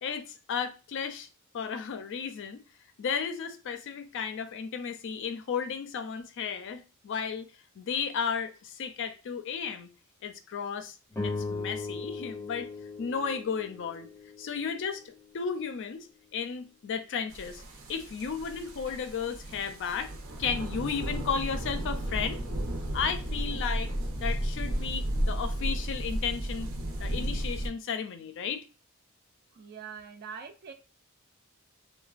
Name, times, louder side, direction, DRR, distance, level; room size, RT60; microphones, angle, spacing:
voice 1, 0.0-1.3 1.5-2.6 3.0-7.5 7.8-9.9 10.2-11.0 11.2-12.7 13.0-14.1 14.4-16.1 16.3-17.6 17.9-20.1 20.4-22.4 22.9-23.9 24.2-26.7 27.0-28.6, left 6 dB, 60° left, 0.4 m, -34 dB
sound 1, 11.1-15.6, left 3 dB, 10° left, 0.6 m, -38 dB
sound 2, 17.3-27.7, right 1 dB, 75° right, 0.7 m, -33 dB
voice 2, 29.5-30.7, right 6 dB, 45° right, 0.3 m, -43 dB
3.1 x 2.1 x 2.4 m
head